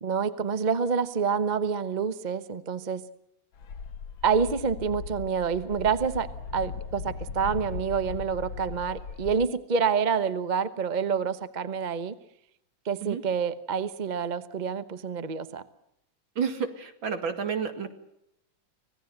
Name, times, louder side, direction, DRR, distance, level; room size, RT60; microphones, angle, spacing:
voice 1, 0.0-3.0 4.2-12.2 12.8-15.6, right 6 dB, 35° right, 13 dB, 0.8 m, -27 dB
sound 1, 3.5-9.5, left 5 dB, 80° left, 1.9 m, -38 dB
voice 2, 16.4-17.9, right 6 dB, 80° right, 7 dB, 3.0 m, -30 dB
25.5 x 18.0 x 7.9 m, 0.81 s
omnidirectional pair, 2.1 m